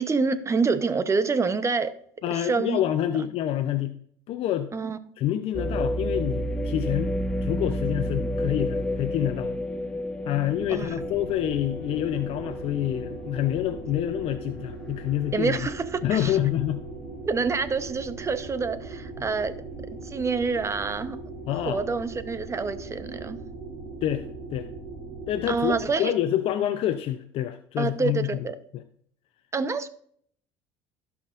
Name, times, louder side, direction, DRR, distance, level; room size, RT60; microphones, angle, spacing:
voice 1, 0.0-1.9 2.3-2.8 4.7-5.0 10.7-10.9 15.3-16.4 17.3-19.5 20.0-21.2 21.5-23.4 25.5-26.1 27.8-28.6 29.5-29.9, right 4 dB, 25° right, 12 dB, 0.8 m, -27 dB
voice 2, 2.2-4.0 4.3-4.7 5.2-9.6 10.2-15.7 16.0-16.8 21.5-21.8 24.0-24.3 24.5-24.7 25.3-28.5 28.7-28.8, left 12 dB, 60° left, 9 dB, 0.6 m, -27 dB
sound 1, 5.5-15.5 16.0-16.1 16.7-17.1, equal, 10° left, 1.0 m, -31 dB
sound 2, 10.1-25.9, right 3 dB, 45° right, 3.4 m, -40 dB
15.5 x 5.9 x 2.5 m, 0.62 s
supercardioid pair, 85°, 11 cm